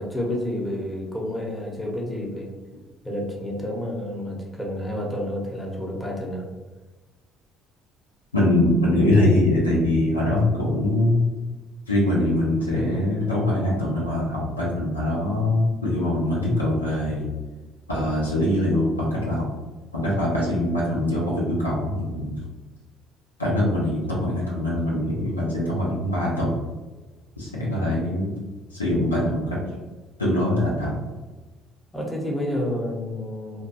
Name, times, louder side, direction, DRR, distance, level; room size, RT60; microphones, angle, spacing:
voice 1, 0.0-2.5 3.0-6.4 27.5-27.8 31.9-33.6, left 1 dB, 10° left, -2 dB, 0.8 m, -30 dB
voice 2, 8.3-11.2 11.9-17.3 17.9-19.5 19.9-22.4 23.4-26.6 27.4-28.3 28.7-29.6 30.2-31.0, left 1 dB, 90° left, -5 dB, 0.5 m, -23 dB
2.9 x 2.2 x 2.8 m, 1.2 s
figure-of-eight pair, 50°, 0 cm